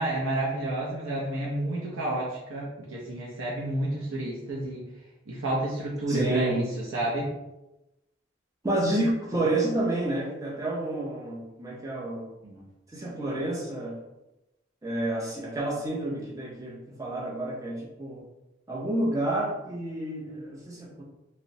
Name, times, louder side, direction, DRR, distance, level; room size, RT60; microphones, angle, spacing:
voice 1, 0.0-4.8 5.3-6.6 6.9-7.3 12.4-12.7, right 1 dB, 85° right, -5 dB, 0.6 m, -30 dB
voice 2, 6.1-6.6 8.6-12.3 12.9-13.9 14.8-18.2 18.7-21.0, right 1 dB, 15° right, -2 dB, 0.4 m, -29 dB
2.9 x 2.0 x 2.6 m, 0.95 s
head